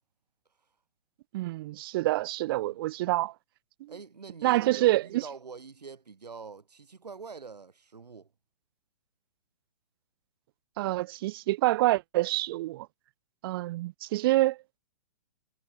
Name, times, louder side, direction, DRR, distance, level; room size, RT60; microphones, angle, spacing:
voice 1, 1.3-3.3 3.8-3.9 4.4-5.2 10.8-12.9 13.4-14.6, right 17 dB, 35° right, 0.5 m, -27 dB
voice 2, 3.9-8.3, right 5 dB, 75° right, 7.0 m, -45 dB
figure-of-eight pair, 120°, 21 cm